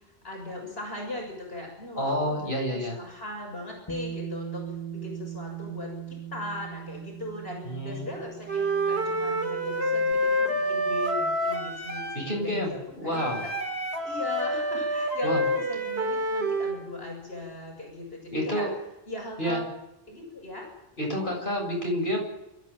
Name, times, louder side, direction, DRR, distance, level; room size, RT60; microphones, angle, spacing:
voice 1, 0.0-2.4 2.7-4.6 4.9-13.5 14.0-18.7 19.1-19.7 20.1-20.7, left 2 dB, 70° left, 0 dB, 7.4 m, -39 dB
voice 2, 1.9-3.0 7.6-8.1 12.1-13.4 15.2-15.4 18.3-18.7 19.4-19.6 21.0-22.2, equal, 55° left, 0 dB, 8.3 m, -29 dB
Bass guitar, 3.9-10.1, right 9 dB, 20° left, 1.9 m, -40 dB
Wind instrument woodwind instrument, 8.5-12.3 13.1-16.8, equal, 80° right, 2.9 m, -28 dB
28.5 x 14.5 x 9.2 m, 0.92 s
omnidirectional pair, 1.1 m